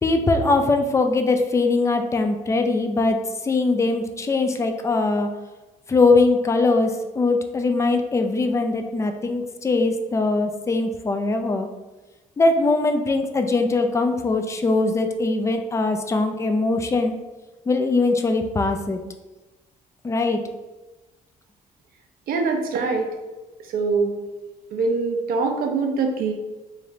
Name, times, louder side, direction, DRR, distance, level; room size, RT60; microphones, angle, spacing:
voice 1, 0.0-3.2 3.4-5.3 5.9-11.7 12.4-17.1 17.7-19.0 20.0-20.4, left 3 dB, 20° left, 5 dB, 0.4 m, -21 dB
voice 2, 22.3-23.1 23.7-24.1 24.7-26.3, right 4 dB, 75° right, 4 dB, 0.7 m, -23 dB
3.3 x 2.4 x 4.1 m, 1.1 s
cardioid pair, 105°, 15 cm